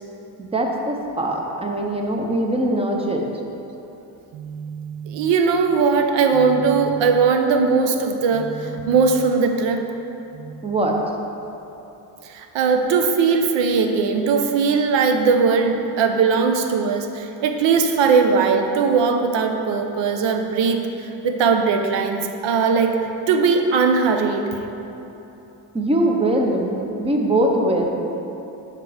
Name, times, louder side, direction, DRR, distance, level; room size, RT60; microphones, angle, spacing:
voice 1, 0.4-3.3 10.6-11.0 25.7-27.9, right 1 dB, 15° right, 1 dB, 0.6 m, -22 dB
voice 2, 4.3-9.9 10.3-10.6 12.2-23.0 23.3-24.5, right 5 dB, 75° right, 5 dB, 0.8 m, -19 dB
6.7 x 5.9 x 4.8 m, 3.0 s
cardioid pair, 160°, 44 cm